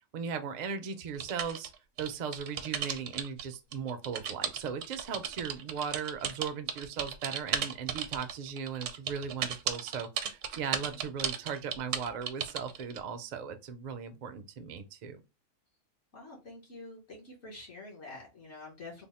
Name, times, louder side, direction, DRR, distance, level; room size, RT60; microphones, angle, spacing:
voice 1, 0.1-1.7 2.0-15.2, right 6 dB, 60° right, 0.4 m, -38 dB
sound 1, 1.2-3.4 3.7-13.0, right 8 dB, 75° right, 0.9 m, -35 dB
voice 2, 16.1-19.0, left 2 dB, 65° left, 1.4 m, -47 dB
3.4 x 2.0 x 4.1 m
omnidirectional pair, 1.3 m